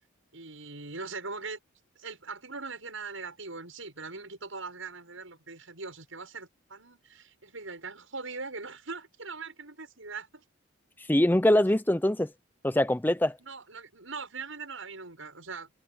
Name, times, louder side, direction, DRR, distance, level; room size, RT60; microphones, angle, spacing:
voice 1, 0.3-1.6 2.0-10.4 13.4-15.7, right 4 dB, 75° right, 7.4 m, -41 dB
voice 2, 11.0-12.3 12.6-13.4, left 1 dB, 10° left, 0.6 m, -23 dB
head